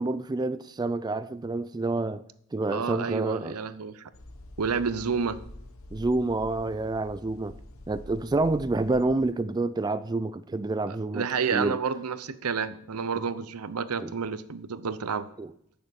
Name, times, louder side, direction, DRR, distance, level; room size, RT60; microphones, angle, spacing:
voice 1, 0.0-2.2 2.5-3.6 5.9-7.5 7.9-11.3 11.5-11.8 14.0-14.1 15.4-15.5, right 2 dB, 20° right, 0.3 m, -28 dB
voice 2, 2.7-4.1 4.6-5.4 11.1-15.3, right 5 dB, 85° right, 0.8 m, -30 dB
sound 1, 4.1-9.3, left 1 dB, 65° left, 1.1 m, -46 dB
12.5 x 6.8 x 8.1 m
head